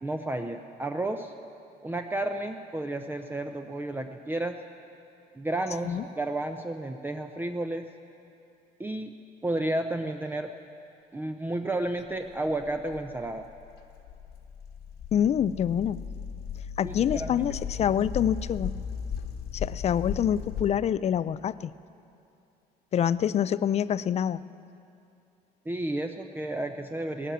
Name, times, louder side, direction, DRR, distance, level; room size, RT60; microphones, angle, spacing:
voice 1, 0.0-1.3 1.8-4.6 5.3-7.9 8.8-9.1 9.4-10.5 11.1-13.5 16.8-17.4 25.7-27.3, right 1 dB, 10° right, 5 dB, 0.6 m, -32 dB
sound 1, 12.2-20.7, left 7 dB, 75° left, 1.3 m, -37 dB
voice 2, 15.1-16.0 16.8-18.7 19.5-21.7 22.9-24.4, left 9 dB, 40° left, 17 dB, 0.4 m, -26 dB
18.0 x 11.0 x 7.3 m, 2.7 s
cardioid pair, 110°, 17 cm